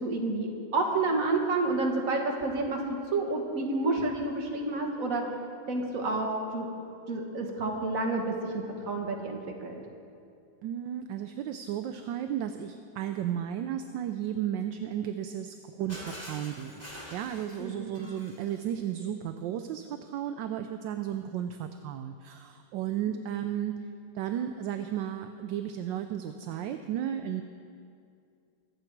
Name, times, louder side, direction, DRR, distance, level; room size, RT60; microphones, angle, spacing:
voice 1, 0.0-2.8 3.1-5.2 5.7-6.7 7.1-9.8 17.6-17.9, right 3 dB, 45° right, 1 dB, 1.8 m, -29 dB
voice 2, 10.6-16.8 17.1-23.8 24.1-27.4, right 10 dB, 75° right, 8 dB, 1.2 m, -34 dB
Shatter, 15.9-18.7, equal, 5° left, 3.1 m, -45 dB
23.5 x 7.9 x 4.6 m, 2.4 s
omnidirectional pair, 2.1 m